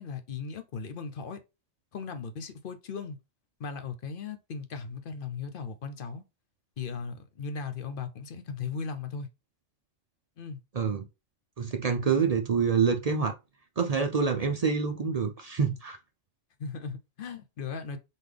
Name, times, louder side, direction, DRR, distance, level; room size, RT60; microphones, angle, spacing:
voice 1, 0.0-1.4 1.9-3.2 3.6-6.2 6.8-9.3 10.4-10.6 16.6-18.0, left 5 dB, 50° left, 0.8 m, -37 dB
voice 2, 10.7-11.1 11.6-13.4 13.8-16.0, right 5 dB, 60° right, 0.4 m, -26 dB
4.1 x 3.9 x 3.3 m
omnidirectional pair, 1.4 m